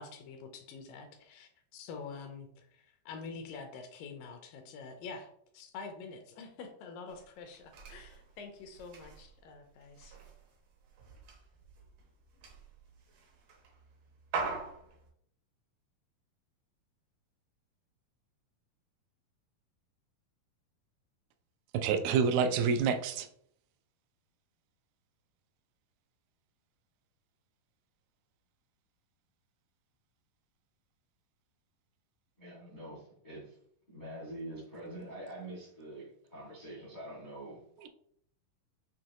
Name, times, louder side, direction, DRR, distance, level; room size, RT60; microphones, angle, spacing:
voice 1, 0.0-10.2, left 4 dB, 80° left, 5 dB, 2.1 m, -47 dB
sound 1, 7.1-15.1, right 4 dB, 75° right, 1.5 m, -44 dB
voice 2, 21.7-23.3, right 6 dB, 90° right, 8 dB, 2.4 m, -27 dB
voice 3, 32.4-33.6 33.9-37.9, right 1 dB, 55° left, -7 dB, 0.5 m, -45 dB
6.3 x 2.8 x 2.9 m, 0.67 s
omnidirectional pair, 4.1 m